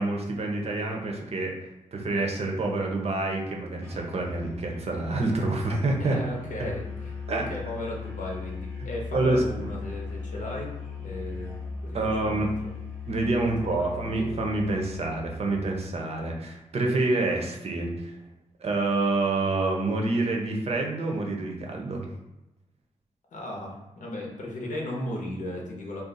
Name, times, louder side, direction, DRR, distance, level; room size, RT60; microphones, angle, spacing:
voice 1, 0.0-1.5 1.9-6.2 7.3-7.4 8.8-9.6 11.9-12.5 13.1-18.1 18.6-22.1, right 2 dB, 50° right, 1 dB, 0.6 m, -27 dB
Musical instrument, 3.8-15.7, left 4 dB, 10° left, 0.7 m, -38 dB
voice 2, 5.9-10.7 11.0-12.5 13.7-14.0 23.3-26.0, left 1 dB, 80° left, -1 dB, 0.8 m, -36 dB
2.5 x 2.3 x 3.8 m, 0.98 s
cardioid pair, 85°, 13 cm